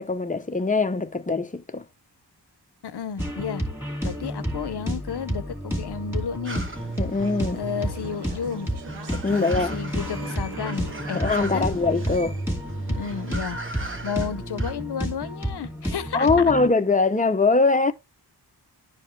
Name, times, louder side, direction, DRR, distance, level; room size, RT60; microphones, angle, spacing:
voice 1, 0.0-1.8 7.0-7.6 9.1-9.7 11.1-12.4 16.1-17.9, left 3 dB, 20° left, 0.7 m, -22 dB
voice 2, 2.8-3.6 4.0-6.6 7.5-8.7 9.3-11.7 12.9-13.6 14.0-16.3, left 7 dB, 70° left, 0.9 m, -32 dB
sound 1, 3.2-16.7, equal, 5° right, 2.7 m, -30 dB
sound 2, 6.5-14.7, right 2 dB, 30° right, 1.0 m, -40 dB
Conversation / Chatter, 6.7-13.4, right 5 dB, 65° right, 0.8 m, -43 dB
11.0 x 4.8 x 3.3 m
wide cardioid pair, 105°, 42 cm